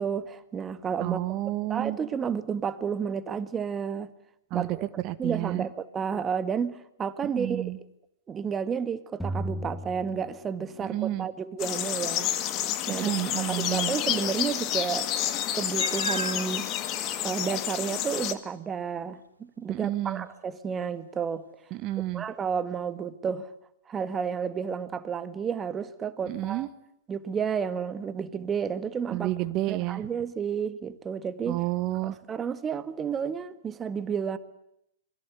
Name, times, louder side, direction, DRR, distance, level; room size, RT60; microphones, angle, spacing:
voice 1, 0.0-1.2 1.7-4.1 4.5-4.8 5.2-7.6 8.3-12.3 12.9-13.1 13.5-15.1 15.5-16.7 17.2-21.5 22.1-23.5 23.9-26.7 27.1-29.3 29.7-31.6 32.0-34.4, right 6 dB, 20° right, 1.9 m, -31 dB
voice 2, 1.0-2.0 4.5-5.7 7.2-7.8 10.8-11.3 12.9-13.9 19.7-20.3 21.7-22.2 26.3-26.7 29.1-30.1 31.5-32.2, right 16 dB, 35° right, 1.6 m, -30 dB
sound 1, 9.2-11.0, right 1 dB, 5° left, 1.7 m, -35 dB
sound 2, 11.6-18.3, left 11 dB, 35° left, 2.2 m, -30 dB
Meow, 15.8-16.5 17.2-17.3 17.8-17.9 21.9-22.0, right 3 dB, 90° right, 2.8 m, -34 dB
27.0 x 21.5 x 8.3 m
figure-of-eight pair, 110°, 0 cm